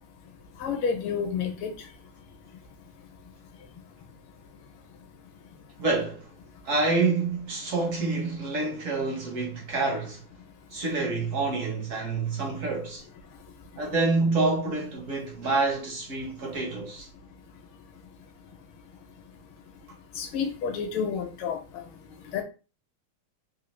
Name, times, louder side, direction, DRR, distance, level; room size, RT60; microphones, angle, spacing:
voice 1, 0.6-1.7 20.2-21.8 22.3-22.4, left 6 dB, 75° left, 1.5 m, -29 dB
voice 2, 5.8-6.3 6.6-10.3 10.7-13.0 13.8-17.1, right 3 dB, 55° right, 0.9 m, -27 dB
3.7 x 2.7 x 3.0 m
omnidirectional pair, 2.3 m